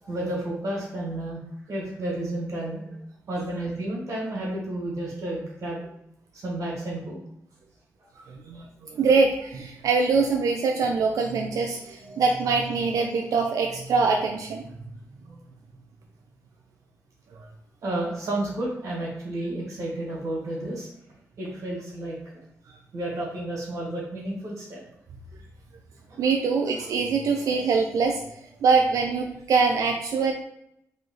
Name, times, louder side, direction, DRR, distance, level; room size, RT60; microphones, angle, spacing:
voice 1, 0.0-1.4 1.7-3.0 3.3-5.8 6.3-7.2 17.8-20.9 21.4-22.2 22.9-24.8 26.1-26.2, right 1 dB, 65° right, -4 dB, 1.2 m, -31 dB
voice 2, 8.3-14.7 17.3-17.5 26.2-30.3, right 4 dB, 80° right, 1 dB, 0.4 m, -24 dB
3.1 x 2.7 x 3.8 m, 0.75 s
cardioid pair, 75°, 6 cm